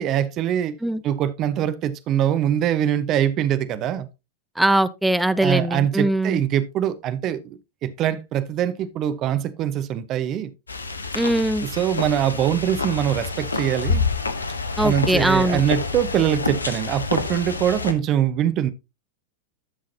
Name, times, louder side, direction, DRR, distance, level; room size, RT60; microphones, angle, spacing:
voice 1, 0.0-0.7 1.0-4.1 5.4-10.5 11.6-14.0 14.8-18.7, right 10 dB, 35° right, 0.9 m, -23 dB
voice 2, 4.6-6.4 11.1-11.7 14.8-15.6, right 1 dB, 5° right, 0.6 m, -21 dB
sound 1, 10.7-17.9, left 4 dB, 75° left, 1.0 m, -27 dB
12.5 x 6.2 x 2.8 m
figure-of-eight pair, 90°, 0 cm